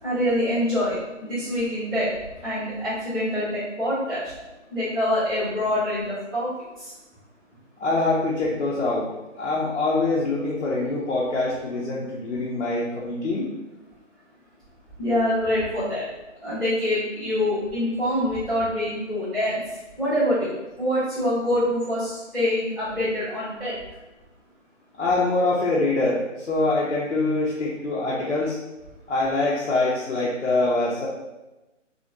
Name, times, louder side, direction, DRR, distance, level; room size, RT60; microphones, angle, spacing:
voice 1, 0.0-2.1 2.4-4.2 4.7-6.5 6.8-6.9 15.0-16.0 16.4-19.6 20.0-20.5 20.8-23.8, left 1 dB, ahead, -25 dB, 0.6 m, -25 dB
voice 2, 7.8-9.1 9.4-13.5 25.0-28.6 29.1-31.1, left 2 dB, 65° left, -5 dB, 0.7 m, -24 dB
2.8 x 2.6 x 2.7 m, 1.0 s
hypercardioid pair, 180°, 38 cm